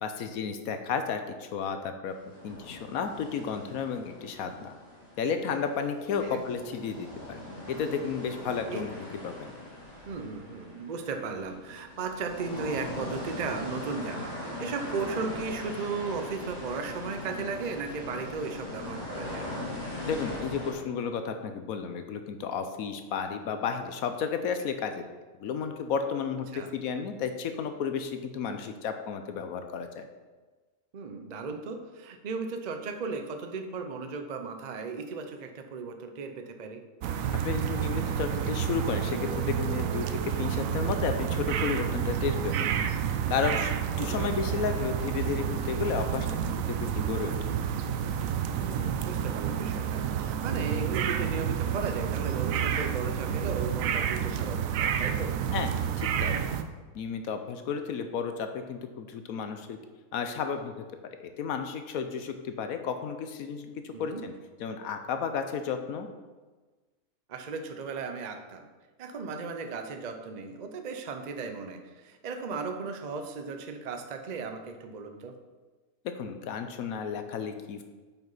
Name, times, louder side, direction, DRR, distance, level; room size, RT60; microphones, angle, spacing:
voice 1, 0.0-2.1 2.4-4.7 5.2-7.4 7.7-8.9 9.2-9.5 20.1-25.0 25.4-30.1 37.4-42.7 43.3-47.3 55.5-55.7 56.0-56.4 56.9-59.8 60.1-60.8 61.2-64.3 64.6-66.1 76.2-77.8, left 6 dB, 75° left, 7 dB, 1.1 m, -32 dB
sound 1, 2.3-5.8 6.1-20.7, left 1 dB, 25° left, 2.2 m, -40 dB
voice 2, 10.1-19.5 26.5-26.7 30.9-36.8 44.0-44.3 48.6-55.3 63.9-64.2 67.3-68.7 69.0-75.3, right 4 dB, 40° right, 5 dB, 0.6 m, -36 dB
sound 2, 37.0-56.6, right 8 dB, 75° right, 1.0 m, -29 dB
8.8 x 5.8 x 4.0 m, 1.3 s
omnidirectional pair, 1.5 m